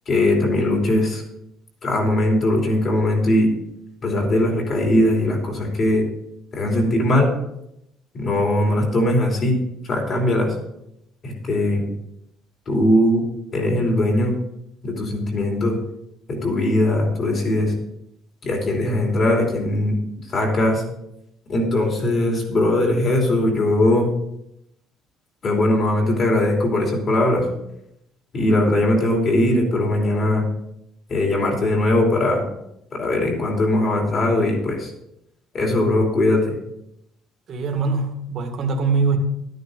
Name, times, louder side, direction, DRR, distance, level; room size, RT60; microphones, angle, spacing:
voice 1, 0.1-1.2 1.8-3.5 4.0-6.0 6.5-7.3 8.1-9.6 9.8-10.5 11.2-11.8 12.7-13.2 13.5-14.3 14.8-15.8 16.3-17.7 18.4-20.0 20.3-20.8 21.5-24.1 25.4-27.4 28.3-30.4 31.1-32.4 32.9-34.9 35.5-36.5, left 1 dB, 35° left, 0 dB, 3.0 m, -20 dB
voice 2, 37.5-39.2, right 4 dB, 40° right, 3 dB, 1.9 m, -22 dB
13.0 x 9.3 x 3.9 m, 0.80 s
cardioid pair, 165°, 0 cm